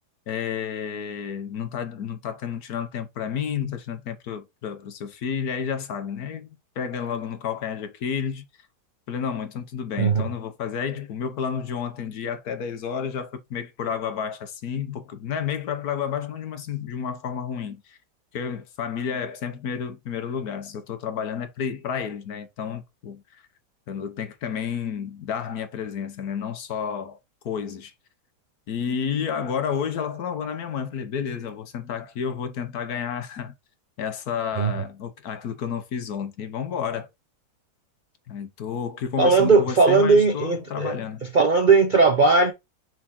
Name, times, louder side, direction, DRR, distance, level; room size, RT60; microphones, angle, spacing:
voice 1, 0.3-6.5 6.8-8.4 9.1-18.0 18.3-23.4 23.9-27.2 27.4-27.9 28.7-33.5 34.0-37.1 38.3-41.2, left 7 dB, 65° left, 1.4 m, -31 dB
voice 2, 10.0-10.3 34.6-34.7 39.2-40.9 41.3-42.5, right 4 dB, 50° right, 0.5 m, -18 dB
6.1 x 3.7 x 4.2 m
omnidirectional pair, 1.8 m